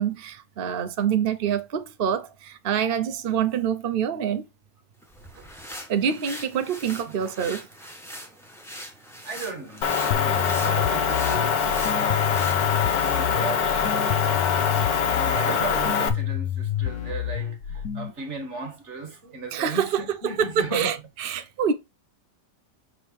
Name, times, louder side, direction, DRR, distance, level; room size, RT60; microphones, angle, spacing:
voice 1, 0.0-4.4 5.9-7.6 19.5-21.7, right 8 dB, 60° right, 0.5 m, -26 dB
sound 1, 5.0-13.3, equal, ahead, 1.4 m, -42 dB
voice 2, 9.2-12.3 13.0-13.9 14.9-20.9, right 4 dB, 40° right, 1.8 m, -35 dB
Motor vehicle (road) / Engine, 9.8-16.1, left 6 dB, 90° left, 1.6 m, -24 dB
sound 2, 10.1-18.1, left 11 dB, 60° left, 1.0 m, -29 dB
7.3 x 3.5 x 4.6 m
omnidirectional pair, 1.9 m